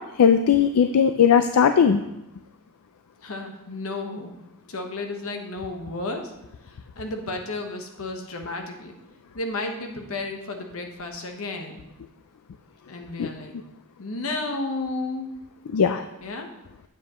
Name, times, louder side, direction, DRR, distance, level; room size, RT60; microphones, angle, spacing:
voice 1, 0.2-2.0 13.2-13.3 15.7-16.0, left 7 dB, 85° left, 8 dB, 0.4 m, -18 dB
voice 2, 3.2-4.4 4.7-6.2 6.6-8.9 9.3-11.8 12.9-13.5 14.0-15.3 16.2-16.5, left 2 dB, 65° left, 4 dB, 1.1 m, -32 dB
8.6 x 7.4 x 3.0 m, 0.93 s
head